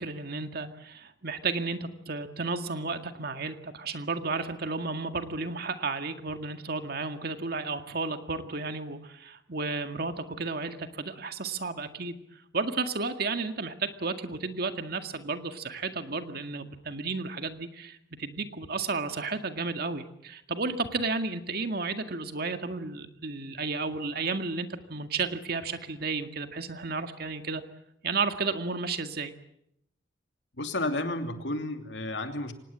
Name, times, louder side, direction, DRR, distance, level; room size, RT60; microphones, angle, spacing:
voice 1, 0.0-12.2 12.5-27.6 28.0-29.3, right 4 dB, 55° right, 7 dB, 2.0 m, -33 dB
voice 2, 30.6-32.5, left 2 dB, 75° left, 6 dB, 2.8 m, -32 dB
25.0 x 19.5 x 8.6 m, 0.76 s
head